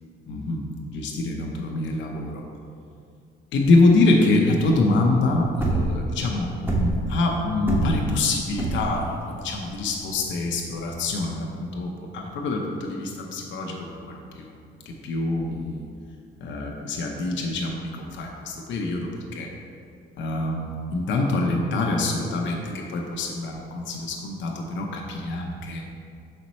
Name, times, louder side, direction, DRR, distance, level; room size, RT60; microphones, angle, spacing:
voice 1, 0.3-0.6 0.9-2.4 3.5-14.5 14.9-15.9 16.4-19.5 20.2-25.8, left 2 dB, 70° left, 0 dB, 0.7 m, -25 dB
sound 1, 5.3-11.2, right 2 dB, 10° right, 1.2 m, -27 dB
5.8 x 4.4 x 4.1 m, 2.3 s
cardioid pair, 90°, 20 cm